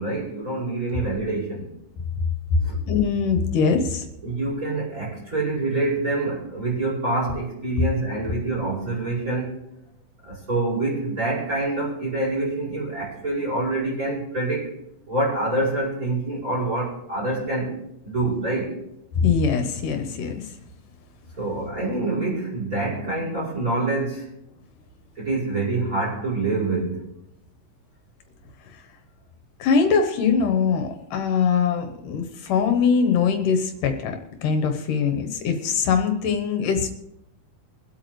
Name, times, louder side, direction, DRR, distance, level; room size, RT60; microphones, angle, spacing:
voice 1, 0.0-1.6 2.6-2.8 4.2-9.5 10.2-14.7 15.1-17.7 18.0-18.7 21.4-24.2 25.2-27.0, right 2 dB, 25° right, -6 dB, 5.4 m, -26 dB
voice 2, 2.9-4.1 19.2-20.5 29.6-34.2 34.4-36.9, left 6 dB, 75° left, 5 dB, 2.6 m, -22 dB
23.0 x 8.5 x 3.2 m, 0.84 s
omnidirectional pair, 3.8 m